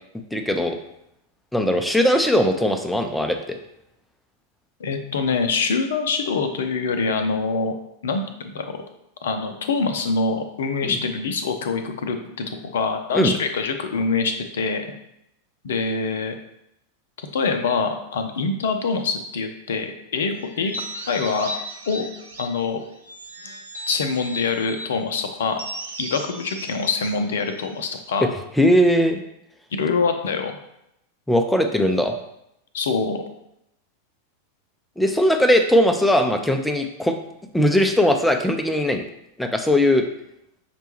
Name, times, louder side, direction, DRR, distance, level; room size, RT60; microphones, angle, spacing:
voice 1, 0.3-0.8 1.5-3.6 10.8-11.0 13.1-13.3 28.2-28.3 28.6-29.2 31.3-32.1 35.0-37.1 37.5-39.0 39.4-40.0, equal, 5° left, 5 dB, 0.4 m, -19 dB
voice 2, 4.8-7.7 8.0-8.8 9.2-14.8 15.6-16.3 17.3-21.5 21.9-22.1 22.4-22.8 23.9-25.6 26.0-28.3 29.7-30.6 32.7-33.2, left 4 dB, 60° left, 7 dB, 0.4 m, -25 dB
sound 1, 20.5-22.6 23.0-24.9 25.5-28.0, equal, 70° right, 0.6 m, -35 dB
5.8 x 2.2 x 3.0 m, 0.81 s
figure-of-eight pair, 90°, 0 cm